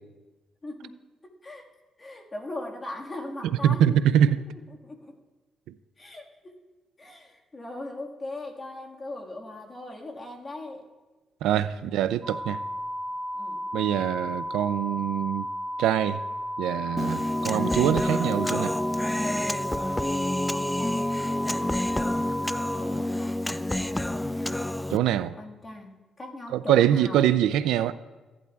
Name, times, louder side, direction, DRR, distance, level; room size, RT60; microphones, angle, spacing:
voice 1, 0.6-0.9 1.2-1.7 2.0-4.3 4.7-5.1 6.0-6.6 7.0-10.8 11.6-12.0 13.3-13.7 20.5-21.2 21.5-24.8 25.4-27.2, left 2 dB, 30° left, 1.7 m, -40 dB
voice 2, 3.4-4.4 11.4-12.6 13.7-15.5 15.8-16.2 16.6-18.7 24.9-25.4 26.5-27.9, right 10 dB, 90° right, 0.3 m, -24 dB
sound 1, 12.2-22.8, equal, 40° right, 1.3 m, -33 dB
Human voice, 17.0-25.0, left 1 dB, 10° left, 0.3 m, -28 dB
16.0 x 11.0 x 2.3 m
cardioid pair, 90°, 0 cm